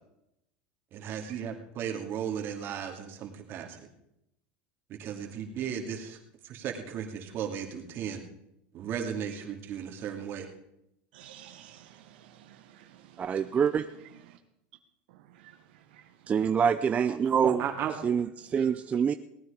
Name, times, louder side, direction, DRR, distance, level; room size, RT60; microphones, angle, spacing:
voice 1, 0.9-3.9 4.9-6.2 6.4-8.2 8.7-10.5 17.4-17.9, right 8 dB, 45° right, 3 dB, 2.5 m, -35 dB
voice 2, 11.1-13.6 14.2-14.4 15.1-16.1 18.5-18.7, right 11 dB, 75° right, 6 dB, 1.3 m, -53 dB
voice 3, 13.2-13.9 16.3-17.6 18.0-19.1, right 7 dB, 25° right, 10 dB, 0.5 m, -26 dB
18.0 x 9.7 x 5.1 m, 0.83 s
supercardioid pair, 115°, 5 cm